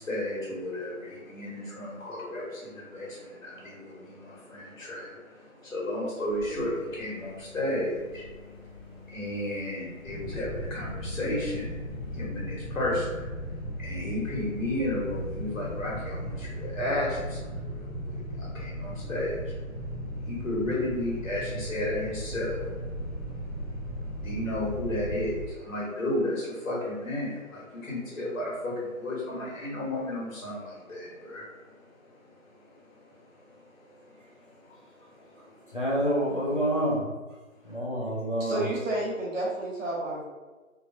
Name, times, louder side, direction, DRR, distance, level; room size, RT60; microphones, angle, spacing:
voice 1, 0.0-35.8, left 1 dB, 70° left, -5 dB, 1.4 m, -34 dB
sound 1, 6.3-12.2, left 4 dB, 15° left, 0.9 m, -49 dB
sound 2, 10.0-25.4, equal, 30° right, 0.6 m, -36 dB
voice 2, 35.4-37.1 37.6-38.7, equal, 40° left, -7 dB, 0.6 m, -28 dB
voice 3, 38.4-40.3, right 1 dB, 65° right, -4 dB, 1.2 m, -31 dB
3.2 x 2.1 x 2.7 m, 1.3 s
figure-of-eight pair, 175°, 41 cm